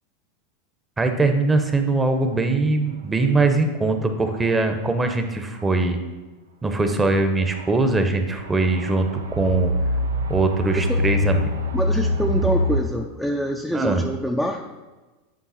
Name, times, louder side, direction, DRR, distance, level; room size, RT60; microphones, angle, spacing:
voice 1, 1.0-6.0 6.6-9.7 10.3-11.6 13.7-14.0, right 3 dB, 15° right, 6 dB, 0.9 m, -21 dB
sound 1, 3.5-3.6 4.2-4.6 5.6-5.7 7.5-7.8 8.4-12.8, left 1 dB, 85° right, 0.5 m, -24 dB
voice 2, 10.7-11.0 11.7-14.6, equal, ahead, 1 dB, 0.5 m, -25 dB
8.7 x 3.7 x 4.2 m, 1.2 s
hypercardioid pair, 95°, 0 cm